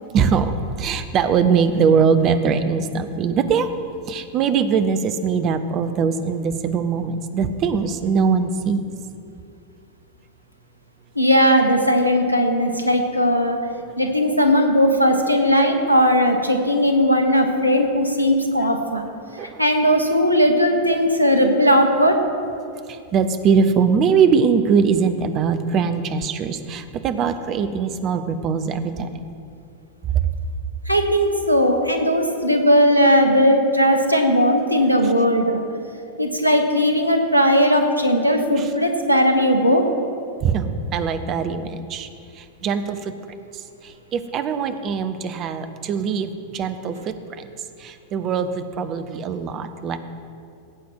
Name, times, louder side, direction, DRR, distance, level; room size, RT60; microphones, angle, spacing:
voice 1, 0.1-3.7 4.1-8.8 19.4-19.6 22.9-29.2 35.0-35.1 38.6-38.7 40.4-42.1 42.3-43.1 43.5-47.5 47.8-50.0, right 6 dB, 35° right, 10 dB, 0.8 m, -22 dB
voice 2, 11.1-13.6 14.0-19.0 19.6-22.2 30.9-35.6 36.2-39.9, equal, 90° left, 4 dB, 1.3 m, -18 dB
17.0 x 8.2 x 4.7 m, 2.5 s
figure-of-eight pair, 90°, 0 cm